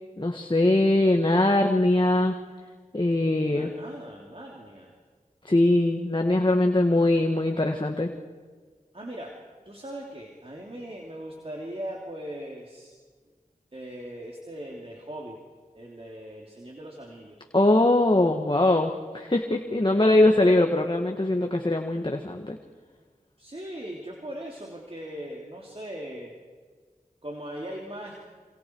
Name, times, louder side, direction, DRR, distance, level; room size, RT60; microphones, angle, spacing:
voice 1, 0.2-2.3 2.9-3.7 5.4-8.1 17.5-22.6, left 1 dB, 35° left, 3 dB, 1.7 m, -22 dB
voice 2, 3.4-4.9 8.9-9.4 9.6-12.9 13.7-15.4 15.7-17.4 20.2-20.5 23.4-26.3 27.2-28.2, right 1 dB, 40° right, -2 dB, 3.3 m, -39 dB
28.0 x 26.5 x 4.7 m, 1.5 s
wide cardioid pair, 45°, 15 cm